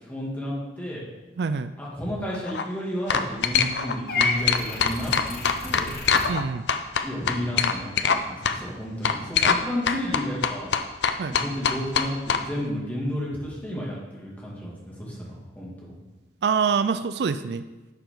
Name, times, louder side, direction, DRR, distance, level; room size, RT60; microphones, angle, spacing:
voice 1, 0.1-1.0 1.8-5.9 7.0-10.7 11.4-15.3 15.6-15.9, equal, 10° left, -6 dB, 2.4 m, -32 dB
voice 2, 1.4-1.7 6.3-6.7 11.2-11.3 16.4-17.7, right 5 dB, 70° right, 12 dB, 0.4 m, -25 dB
sound 1, 2.3-2.6 3.1-6.4 6.7-8.2 8.4-8.6 9.0-9.6 9.9-12.4, left 6 dB, 80° left, 0.6 m, -23 dB
Purr / Meow, 4.1-6.3, left 3 dB, 55° left, 1.2 m, -30 dB
11.5 x 6.8 x 3.9 m, 1.1 s
head